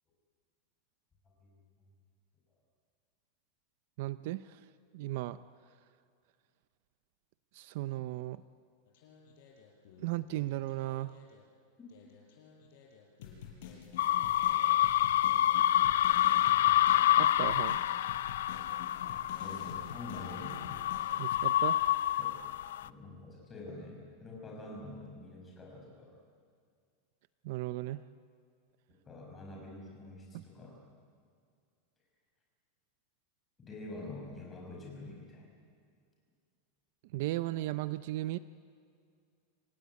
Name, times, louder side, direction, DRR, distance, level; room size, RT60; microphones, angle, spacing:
voice 1, 1.4-1.9 19.4-20.6 22.2-22.3 22.8-26.1 29.1-30.8 33.6-35.4, left 2 dB, 15° left, -1 dB, 5.9 m, -46 dB
voice 2, 4.0-4.7 4.9-5.4 7.5-8.4 10.0-11.1 17.1-17.8 21.2-21.9 27.4-28.0 30.3-30.4 37.1-38.4, right 16 dB, 50° right, 15 dB, 0.5 m, -36 dB
sound 1, 8.9-11.4 11.9-21.5, left 7 dB, 55° left, 5.6 m, -49 dB
sound 2, 14.0-22.9, left 13 dB, 80° left, 0.6 m, -28 dB
27.0 x 18.0 x 9.5 m, 2.2 s
supercardioid pair, 175°, 0 cm